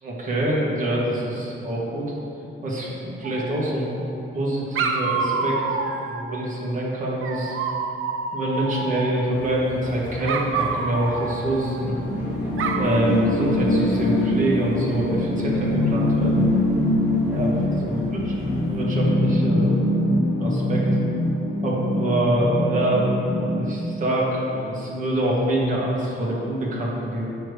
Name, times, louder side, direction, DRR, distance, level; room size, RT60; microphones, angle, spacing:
voice 1, 0.0-2.1 2.6-4.0 4.3-5.6 6.0-7.6 8.3-11.9 12.7-16.4 17.3-18.3 18.7-19.8 20.4-20.8 21.6-23.1 23.4-27.3, right 1 dB, 40° right, -5 dB, 1.6 m, -25 dB
Dog, 3.2-4.1 4.7-6.4 7.2-9.3 10.2-12.1 12.6-13.0, right 4 dB, 80° right, 0.6 m, -28 dB
sound 1, 9.3-18.8, equal, 10° right, 2.0 m, -39 dB
sound 2, 11.8-23.8, left 1 dB, 70° left, 1.1 m, -23 dB
7.1 x 4.8 x 6.7 m, 2.8 s
wide cardioid pair, 180°, 21 cm